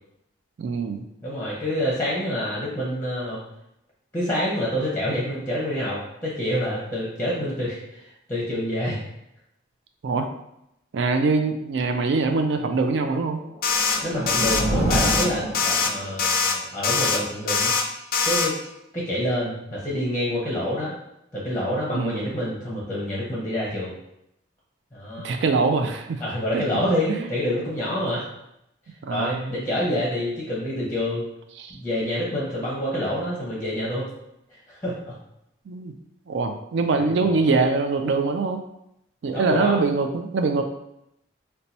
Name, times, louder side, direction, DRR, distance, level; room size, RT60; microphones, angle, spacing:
voice 1, 0.6-1.0 10.0-10.3 10.9-13.4 21.9-22.3 25.2-26.2 26.5-26.6 27.1-27.3 29.0-29.6 31.6-31.8 35.7-35.9 36.3-38.6 39.2-40.6, right 4 dB, 70° right, 6 dB, 0.3 m, -23 dB
voice 2, 1.2-3.4 4.1-9.0 14.0-17.7 18.2-18.6 18.9-20.9 21.3-24.0 24.9-25.4 26.2-28.3 29.1-31.3 31.7-34.0 34.5-35.1 36.9-37.1 39.3-39.8, left 1 dB, 10° left, -6 dB, 0.7 m, -27 dB
sound 1, 13.4-16.3, right 1 dB, 35° right, 1.3 m, -27 dB
sound 2, 13.6-14.0 14.3-14.6 14.9-15.3 15.5-15.9 16.2-16.5 16.8-17.2 17.5-17.8 18.1-18.5, left 5 dB, 45° left, 0.3 m, -22 dB
2.7 x 2.2 x 4.1 m, 0.82 s
head